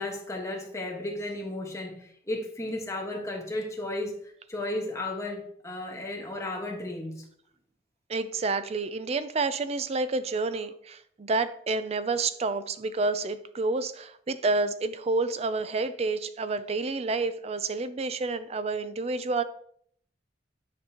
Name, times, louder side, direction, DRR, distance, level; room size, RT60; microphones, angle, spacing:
voice 1, 0.0-4.1 4.5-7.2, left 2 dB, 15° left, 0 dB, 1.3 m, -34 dB
voice 2, 8.1-19.4, right 3 dB, 35° right, 13 dB, 0.4 m, -29 dB
9.5 x 5.2 x 2.9 m, 0.65 s
head